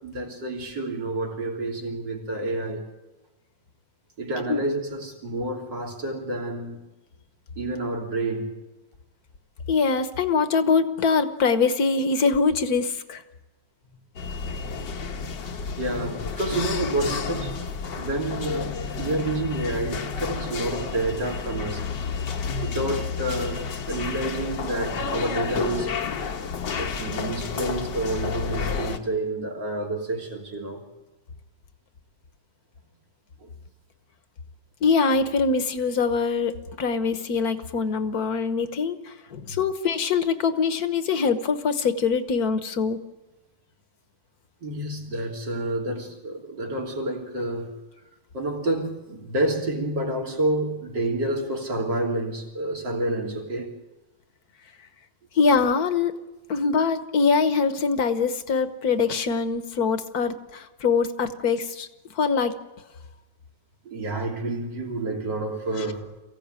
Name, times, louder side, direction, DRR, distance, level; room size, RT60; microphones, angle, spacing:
voice 1, 0.0-2.9 4.2-6.9 7.6-8.5 15.8-17.5 18.0-21.8 22.6-25.9 26.8-30.8 33.4-33.5 44.6-47.7 48.3-53.7 63.9-66.1, right 2 dB, 75° right, 0 dB, 3.7 m, -29 dB
voice 2, 9.7-13.2 34.8-43.0 55.3-56.2 56.5-61.9 62.1-62.5 65.8-65.9, left 5 dB, 60° left, 10 dB, 1.6 m, -23 dB
sound 1, 14.2-29.0, left 5 dB, 75° left, 2.0 m, -31 dB
23.5 x 16.0 x 9.0 m, 1.1 s
omnidirectional pair, 2.0 m